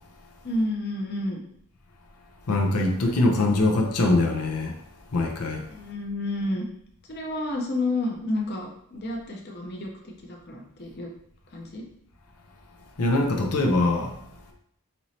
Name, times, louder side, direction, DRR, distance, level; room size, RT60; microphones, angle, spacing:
voice 1, 0.4-1.4 5.7-6.6 7.1-11.1 11.5-11.9, left 1 dB, 45° left, 0 dB, 0.7 m, -30 dB
voice 2, 2.5-4.8 5.1-5.7 13.0-14.2, left 2 dB, 85° left, 2 dB, 0.7 m, -23 dB
5.4 x 3.0 x 2.8 m, 0.70 s
head